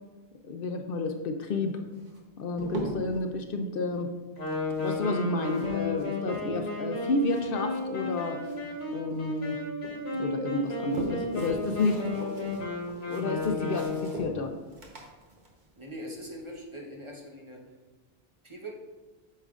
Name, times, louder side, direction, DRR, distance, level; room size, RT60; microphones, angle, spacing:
voice 1, 0.5-1.8 2.4-4.1 4.8-8.4 8.9-9.6 10.1-12.0 13.0-14.5, left 3 dB, 65° left, 5 dB, 0.7 m, -30 dB
sound 1, 1.9-3.2 4.4-6.7 7.0-8.8 9.1-10.0 10.5-16.6, right 1 dB, 50° right, 1.1 m, -41 dB
Wind instrument woodwind instrument, 4.4-14.3, left 2 dB, 80° left, 1.5 m, -33 dB
voice 2, 11.0-11.3 12.0-12.6 15.8-17.8 18.4-18.7, equal, 30° right, -2 dB, 1.0 m, -42 dB
8.5 x 6.5 x 2.4 m, 1.3 s
omnidirectional pair, 1.0 m